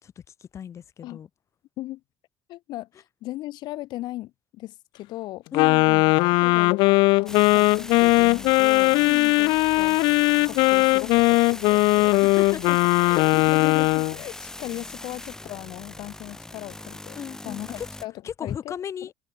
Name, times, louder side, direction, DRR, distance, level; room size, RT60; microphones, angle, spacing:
voice 1, 0.0-1.3 5.5-5.9 9.0-9.3 12.1-13.2 17.2-17.9 18.2-19.1, left 8 dB, 40° left, 2.7 m, -36 dB
voice 2, 2.5-5.5 5.9-8.9 9.2-12.1 13.2-17.2 17.4-18.1 18.4-18.7 19.0-19.1, left 16 dB, 70° left, 5.1 m, -38 dB
Wind instrument woodwind instrument, 5.5-14.2, left 24 dB, 90° left, 0.7 m, -19 dB
sound 1, 7.3-18.1, left 1 dB, 5° left, 1.5 m, -40 dB
cardioid pair, 135°, 8 cm